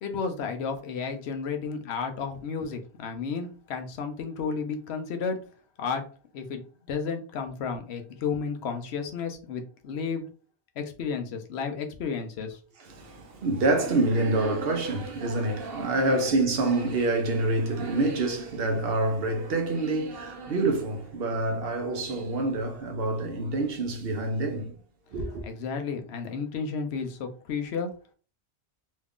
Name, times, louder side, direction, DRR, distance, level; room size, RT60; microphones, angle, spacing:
voice 1, 0.0-5.4 5.8-6.0 6.3-10.2 10.8-12.6 25.4-27.9, left 5 dB, 80° left, 0.9 m, -32 dB
voice 2, 13.0-24.7 25.1-25.4, right 2 dB, 65° right, 0.9 m, -27 dB
3.1 x 2.4 x 3.5 m
omnidirectional pair, 1.1 m